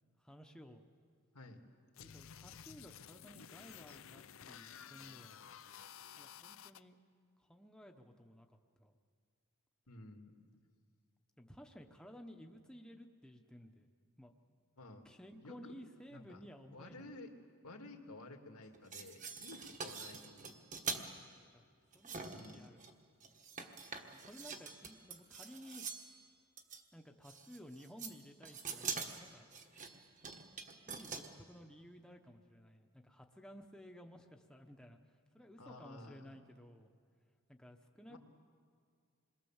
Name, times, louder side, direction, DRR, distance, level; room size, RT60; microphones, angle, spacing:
voice 1, 0.2-0.8 2.0-5.4 6.2-7.0 7.4-8.9 11.4-13.9 14.2-14.3 15.0-17.1 21.2-22.8 24.1-25.9 26.9-29.5 30.9-36.9 37.5-38.2, equal, 5° left, 3 dB, 1.0 m, -56 dB
voice 2, 1.3-1.6 9.9-10.3 14.8-15.1 15.4-15.7 16.1-16.4 16.7-17.3 17.6-20.6 22.3-22.7 35.3-36.3 38.1-38.2, left 2 dB, 85° left, 4 dB, 2.2 m, -53 dB
sound 1, 1.9-6.8, left 8 dB, 65° left, 0.6 m, -53 dB
sound 2, 18.7-21.1 21.9-22.9 23.2-26.1 26.6-26.8 27.2-28.2 28.4-31.3, right 5 dB, 35° right, 1.5 m, -45 dB
27.5 x 21.5 x 7.3 m, 2.2 s
head